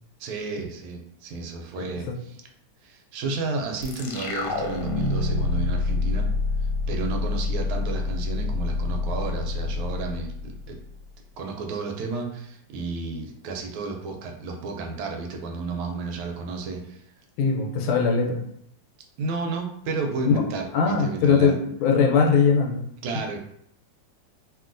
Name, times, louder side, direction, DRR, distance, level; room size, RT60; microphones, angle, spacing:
voice 1, 0.2-2.4 2.8-6.3 6.9-10.8 11.4-17.1 19.2-21.6 23.0-23.4, right 4 dB, 85° right, 2 dB, 1.4 m, -32 dB
sound 1, 3.8-11.1, left 3 dB, 75° left, 1.0 m, -27 dB
voice 2, 17.4-18.4 20.3-20.4 20.7-21.5 21.8-22.8, left 5 dB, 90° left, 1 dB, 1.5 m, -20 dB
2.9 x 2.7 x 2.5 m, 0.70 s
omnidirectional pair, 2.2 m